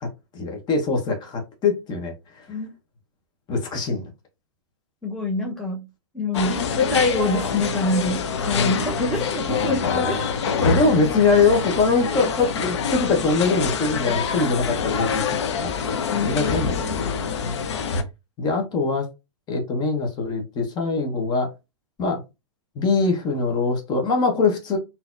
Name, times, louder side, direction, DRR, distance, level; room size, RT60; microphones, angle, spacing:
voice 1, 0.0-2.6 3.5-4.0 8.5-8.9 9.5-9.7 10.0-10.3 10.6-15.2 15.6-15.7 16.2-17.1 17.4-17.7 18.4-19.1 19.5-21.5 22.0-22.2 22.7-24.8, left 4 dB, 30° left, 1.1 m, -23 dB
voice 2, 5.0-5.8 6.1-10.8 16.1-17.0, left 2 dB, ahead, 1.0 m, -26 dB
sound 1, 6.3-18.0, left 5 dB, 70° left, 0.7 m, -26 dB
3.9 x 2.8 x 2.5 m
hypercardioid pair, 120°, 15 cm